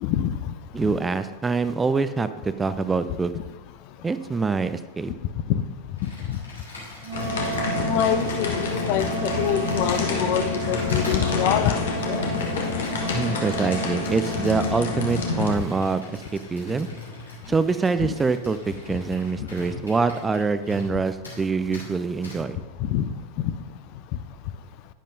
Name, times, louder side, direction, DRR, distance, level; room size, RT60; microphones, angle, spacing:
voice 1, 0.0-0.3 0.8-0.9 5.5-5.6 6.0-6.4 7.9-11.8 12.1-12.2 18.0-18.1 22.8-23.0, left 10 dB, 45° left, 12 dB, 0.5 m, -25 dB
voice 2, 0.7-3.3 4.0-5.1 13.1-16.2 16.5-16.9 17.5-22.6, right 4 dB, 15° right, 12 dB, 0.4 m, -25 dB
Computer keyboard, 6.0-21.0 21.2-21.4 21.7-21.9 22.2-22.4, left 2 dB, 80° left, 3.0 m, -42 dB
Wind instrument woodwind instrument, 7.0-15.5, right 10 dB, 45° right, 1.6 m, -34 dB
sound 1, 7.1-15.5, left 5 dB, 60° left, 1.4 m, -28 dB
10.5 x 10.0 x 2.7 m, 1.2 s
figure-of-eight pair, 90°, 0 cm